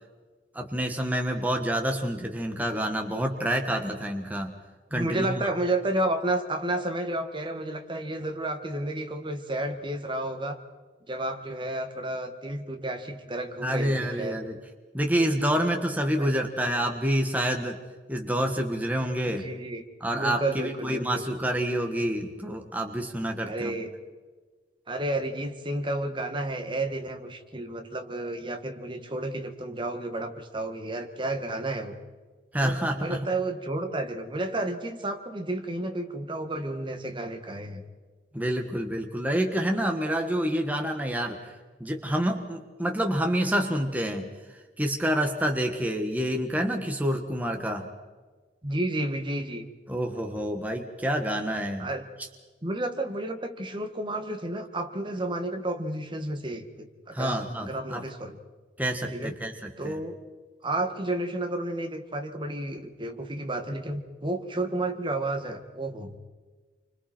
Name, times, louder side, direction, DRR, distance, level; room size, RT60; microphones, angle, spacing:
voice 1, 0.5-4.5 4.9-5.4 13.6-14.6 14.9-17.8 18.1-19.5 20.0-23.8 32.5-33.3 38.3-41.5 41.8-44.3 44.8-47.9 49.9-51.9 57.1-58.0 58.8-60.0, equal, 10° right, 3 dB, 1.5 m, -28 dB
voice 2, 4.9-10.6 11.1-14.4 16.2-16.3 19.2-19.8 20.1-21.2 23.4-23.9 24.9-32.0 32.6-37.8 48.6-49.6 51.8-52.0 52.6-58.4 59.1-59.3 59.8-60.2 60.6-66.2, right 1 dB, 25° right, 5 dB, 1.8 m, -31 dB
29.0 x 25.0 x 4.5 m, 1.4 s
head